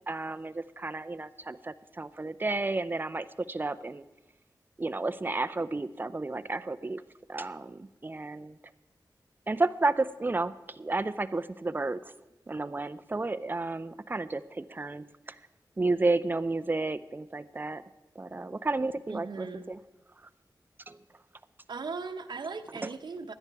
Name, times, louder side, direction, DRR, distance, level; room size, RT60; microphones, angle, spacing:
voice 1, 0.0-4.0 4.8-7.0 7.3-8.5 9.5-12.0 12.5-15.1 15.8-17.8 18.2-19.5 20.9-21.0, right 3 dB, 25° right, 12 dB, 0.5 m, -31 dB
voice 2, 19.1-19.7 21.7-23.3, right 4 dB, 80° right, 6 dB, 0.8 m, -38 dB
17.0 x 11.0 x 4.7 m, 1.1 s
wide cardioid pair, 105°, 8 cm